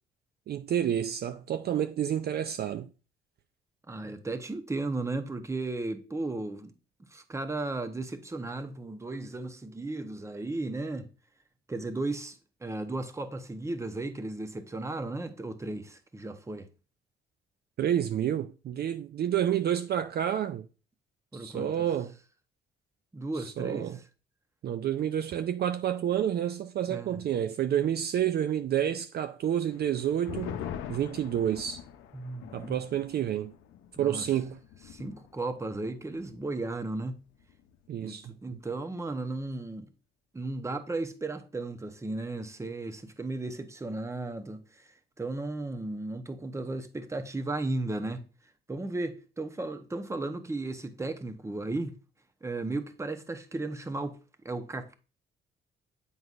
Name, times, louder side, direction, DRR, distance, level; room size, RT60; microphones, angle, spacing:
voice 1, 0.5-2.9 17.8-20.7 21.3-22.1 23.4-24.0 24.6-30.6 30.9-31.8 32.5-33.5 34.0-34.6 37.9-38.6, right 10 dB, 55° right, 0.4 m, -29 dB
voice 2, 3.9-6.7 7.1-11.1 11.7-16.7 21.3-21.9 23.1-23.9 26.9-27.2 32.1-32.8 34.0-34.2 34.9-37.2 38.0-39.9 40.3-48.2 48.7-52.0 52.4-54.2 54.4-54.9, right 2 dB, 15° right, 0.8 m, -35 dB
sound 1, 29.7-36.6 36.9-37.0 37.4-37.9, left 9 dB, 85° left, 0.6 m, -44 dB
7.8 x 5.5 x 2.4 m
cardioid pair, 90°, 20 cm